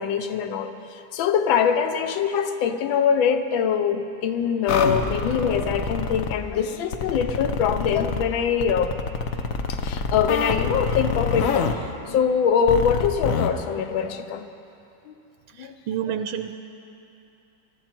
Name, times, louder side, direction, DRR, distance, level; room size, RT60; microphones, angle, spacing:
voice 1, 0.0-9.0 9.7-14.5 15.1-15.2 15.6-15.7 16.1-16.2, left 7 dB, 80° left, 9 dB, 1.5 m, -23 dB
sound 1, 4.7-6.4 6.9-8.2 8.6-11.7 12.7-13.5, left 5 dB, 60° left, 0.9 m, -26 dB
voice 2, 15.5-16.5, right 9 dB, 80° right, 8 dB, 1.3 m, -29 dB
23.0 x 12.5 x 4.5 m, 2.7 s
omnidirectional pair, 2.2 m